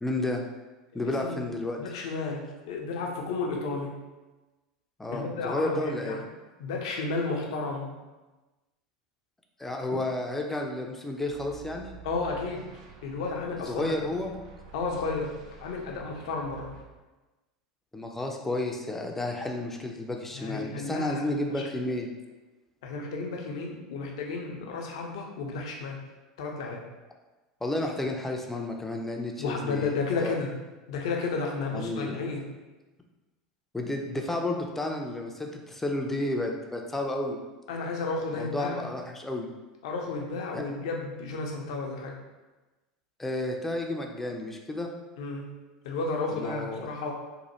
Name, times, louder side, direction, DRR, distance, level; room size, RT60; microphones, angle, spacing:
voice 1, 0.0-0.4 0.9-1.8 5.0-6.2 9.6-12.0 13.7-14.4 17.9-22.1 27.6-30.4 31.7-32.3 33.7-37.4 38.3-39.5 40.5-40.6 43.2-44.9 46.3-46.9, left 1 dB, 10° left, 2 dB, 0.4 m, -31 dB
voice 2, 1.0-1.4 1.8-4.0 5.1-6.3 6.6-7.9 12.0-12.6 13.0-13.9 14.7-15.3 15.6-16.7 20.3-21.6 22.8-26.0 26.4-26.8 29.4-30.5 30.9-32.5 37.7-38.9 39.8-42.1 45.2-45.5 45.8-47.1, left 3 dB, 70° left, 0 dB, 0.5 m, -32 dB
sound 1, 11.2-16.8, right 6 dB, 70° right, 0.5 m, -49 dB
3.0 x 2.1 x 2.9 m, 1.1 s
hypercardioid pair, 85°, 3 cm